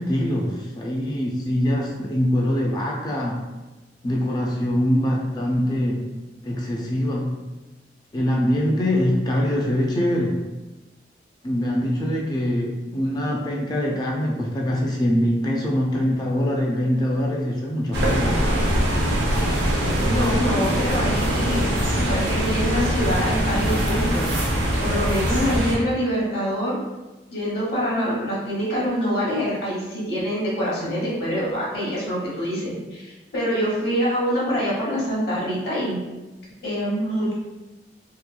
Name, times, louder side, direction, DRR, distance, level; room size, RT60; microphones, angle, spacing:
voice 1, 0.0-3.5 4.0-6.1 6.4-7.4 8.1-10.4 11.4-18.4, equal, 20° left, -1 dB, 0.3 m, -23 dB
sound 1, 17.9-25.8, equal, 65° right, 0.5 m, -22 dB
voice 2, 20.0-21.7 21.9-24.4 24.8-26.8 27.3-36.0 36.6-37.3, equal, 60° left, -6 dB, 0.8 m, -25 dB
2.8 x 2.2 x 2.2 m, 1.1 s
head